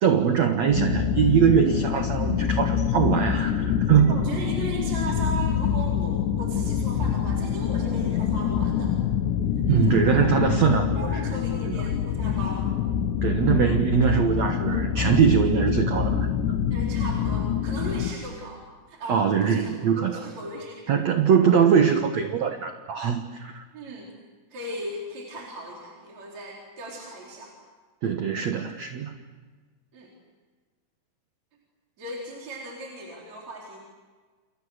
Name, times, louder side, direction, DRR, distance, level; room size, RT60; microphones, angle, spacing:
voice 1, 0.0-4.2 9.7-11.1 11.7-11.8 13.2-16.3 19.1-20.2 20.9-23.6 28.0-29.2, right 7 dB, 65° right, 6 dB, 1.7 m, -22 dB
sound 1, 0.7-18.1, left 8 dB, 80° left, 3.6 m, -25 dB
voice 2, 4.1-8.9 9.7-10.0 10.9-12.7 16.7-18.6 18.9-19.7 20.0-21.0 23.7-24.1 24.5-27.5 29.9-30.1 32.0-33.8, right 1 dB, 40° right, -2 dB, 5.2 m, -37 dB
29.0 x 28.5 x 6.6 m, 1.4 s
omnidirectional pair, 5.0 m